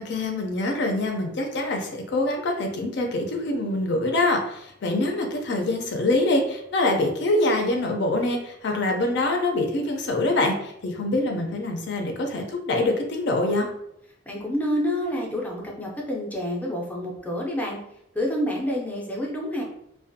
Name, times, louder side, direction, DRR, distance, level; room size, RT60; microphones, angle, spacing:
voice 1, 0.0-13.7, left 2 dB, 65° left, 3 dB, 0.4 m, -25 dB
voice 2, 14.3-17.8 18.1-19.6, equal, 10° left, -2 dB, 0.5 m, -28 dB
2.4 x 2.2 x 2.6 m, 0.77 s
head